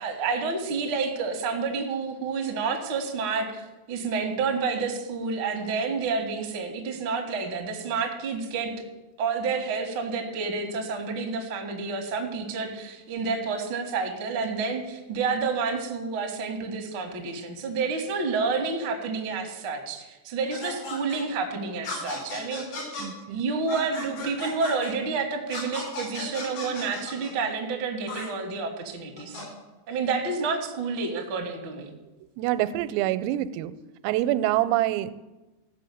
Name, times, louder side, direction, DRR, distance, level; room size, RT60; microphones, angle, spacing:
voice 1, 0.0-8.7 9.2-22.9 23.3-29.4 29.9-31.9, right 4 dB, 65° right, 2 dB, 1.3 m, -29 dB
sound 1, 20.5-21.2 21.8-23.0 23.7-24.9 25.5-27.3 28.1-28.3 29.2-29.4, left 3 dB, 80° left, 7.8 m, -35 dB
voice 2, 23.0-23.4 32.4-33.7 34.0-35.1, right 14 dB, 90° right, 14 dB, 3.3 m, -26 dB
15.5 x 6.5 x 8.6 m, 1.1 s
omnidirectional pair, 6.0 m